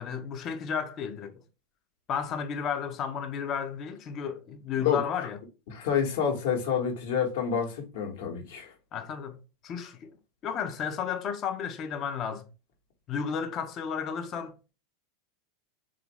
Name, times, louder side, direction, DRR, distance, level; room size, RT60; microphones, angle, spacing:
voice 1, 0.0-1.3 2.1-5.4 8.9-10.1 10.4-12.5 13.1-14.7, left 7 dB, 40° left, 0.6 m, -33 dB
voice 2, 5.7-8.7, left 7 dB, 65° left, 1.0 m, -28 dB
3.3 x 2.5 x 3.0 m
hypercardioid pair, 95°, 0 cm